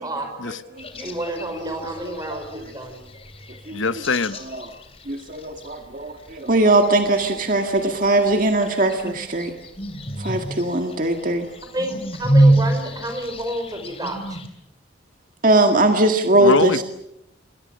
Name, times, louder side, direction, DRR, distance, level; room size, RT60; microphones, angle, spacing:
voice 1, 0.4-1.1 2.3-2.6 3.7-3.9 4.6-4.7 5.1-9.5 10.2-11.5 15.4-16.8, right 2 dB, 45° right, 1.9 m, -20 dB
sound 1, 0.8-14.5, right 1 dB, 30° left, 3.2 m, -27 dB
voice 2, 1.0-3.0 11.7-14.4, right 1 dB, 20° right, 4.9 m, -30 dB
voice 3, 3.7-4.4 16.4-16.8, left 4 dB, 80° left, 1.0 m, -22 dB
28.5 x 22.5 x 6.5 m
head